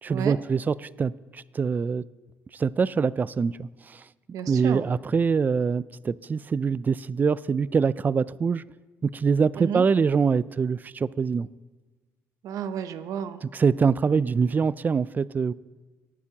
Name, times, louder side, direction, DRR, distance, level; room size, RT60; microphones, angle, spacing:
voice 1, 0.0-2.0 2.5-4.0 4.5-8.6 9.0-11.5 13.4-15.5, right 5 dB, 30° right, 19 dB, 0.3 m, -24 dB
voice 2, 4.3-4.8 9.6-9.8 12.4-13.4, right 8 dB, 70° right, 11 dB, 0.8 m, -32 dB
19.0 x 8.5 x 2.9 m, 1.3 s
cardioid pair, 85°, 6 cm